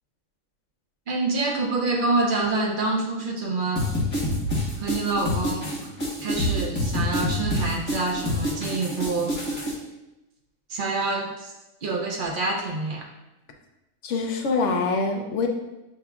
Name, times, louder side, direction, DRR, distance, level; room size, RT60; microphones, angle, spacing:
voice 1, 1.1-3.9 4.8-5.9 6.2-9.7 10.7-11.5 11.8-13.1, right 3 dB, 70° right, 0 dB, 0.4 m, -27 dB
sound 1, 3.8-9.7, left 1 dB, 20° left, 1.0 m, -27 dB
voice 2, 14.0-15.5, left 4 dB, 70° left, 3 dB, 0.8 m, -24 dB
6.9 x 2.8 x 2.3 m, 0.99 s
omnidirectional pair, 1.4 m